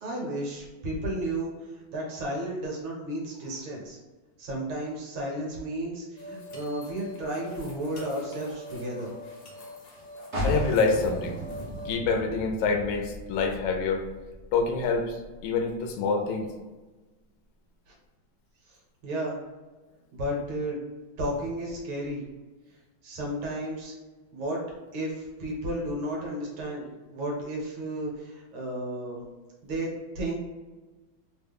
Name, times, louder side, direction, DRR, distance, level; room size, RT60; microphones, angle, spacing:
voice 1, 0.0-4.0 4.4-9.1 17.9-18.0 18.7-18.8 19.0-19.4 20.1-20.8 21.2-22.2 23.0-23.9 24.3-24.6 24.9-29.2 29.6-30.4, right 1 dB, 70° right, -2 dB, 1.7 m, -33 dB
sound 1, 6.2-11.9, left 2 dB, 60° left, 1.2 m, -43 dB
sound 2, 10.3-15.9, equal, 50° right, 1.0 m, -35 dB
voice 2, 10.4-11.4 11.8-14.1 14.5-15.2 15.4-16.5, left 4 dB, 75° left, 3 dB, 1.2 m, -26 dB
3.7 x 2.2 x 3.4 m, 1.2 s
omnidirectional pair, 2.3 m